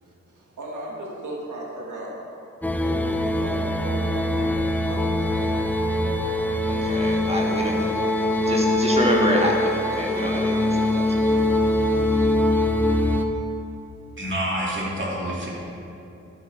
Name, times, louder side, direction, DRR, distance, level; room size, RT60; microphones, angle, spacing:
voice 1, 0.0-2.2 2.8-5.6, right 1 dB, 85° right, -3 dB, 1.9 m, -36 dB
sound 1, 2.6-13.2, left 1 dB, 5° left, 0.8 m, -23 dB
voice 2, 6.6-12.2, equal, 20° right, -1 dB, 1.6 m, -27 dB
voice 3, 14.2-15.5, right 1 dB, 40° right, -4 dB, 2.8 m, -27 dB
12.0 x 7.9 x 4.5 m, 2.8 s
cardioid pair, 55°, 29 cm